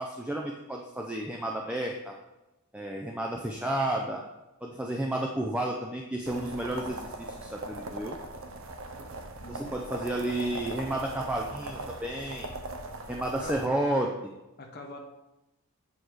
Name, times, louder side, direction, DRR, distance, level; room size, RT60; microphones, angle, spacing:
voice 1, 0.0-2.2 2.7-4.2 4.6-8.2 9.5-12.5 13.1-14.3, right 1 dB, 5° right, 0 dB, 0.5 m, -32 dB
sound 1, 6.3-13.7, right 2 dB, 65° right, 0.8 m, -40 dB
voice 2, 9.1-9.8 13.1-13.6 14.6-15.0, left 3 dB, 45° left, 1 dB, 0.9 m, -45 dB
8.5 x 4.9 x 4.7 m, 0.98 s
head